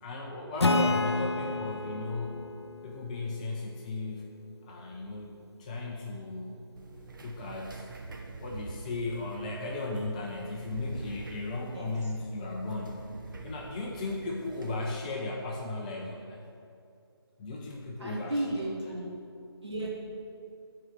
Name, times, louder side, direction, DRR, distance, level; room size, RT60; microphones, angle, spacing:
voice 1, 0.0-2.5 2.8-4.2 4.6-5.3 5.6-6.7 7.2-7.9 8.4-13.1 13.4-16.4 17.4-18.7, left 2 dB, 15° left, -1 dB, 0.8 m, -36 dB
Acoustic guitar / Strum, 0.6-4.1, left 2 dB, 85° left, 0.9 m, -30 dB
sound 1, 6.8-15.0, right 3 dB, 50° right, 1.3 m, -45 dB
voice 2, 18.0-19.1 19.6-19.9, right 1 dB, 90° right, -5 dB, 2.9 m, -33 dB
13.5 x 4.9 x 7.9 m, 2.6 s
figure-of-eight pair, 155°, 14 cm